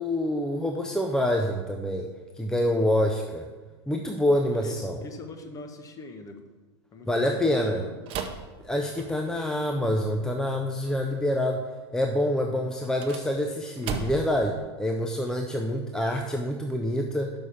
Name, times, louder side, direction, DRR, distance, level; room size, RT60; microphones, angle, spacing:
voice 1, 0.0-2.1 2.4-3.5 3.9-5.0 7.1-7.8 8.6-11.6 11.9-17.3, left 1 dB, 5° left, 2 dB, 0.6 m, -26 dB
voice 2, 4.3-6.4 6.9-8.0, left 3 dB, 25° left, 6 dB, 1.0 m, -42 dB
sound 1, 8.0-9.5 12.8-14.4, right 5 dB, 40° right, 0.9 m, -36 dB
6.2 x 5.7 x 6.9 m, 1.3 s
hypercardioid pair, 110°, 14 cm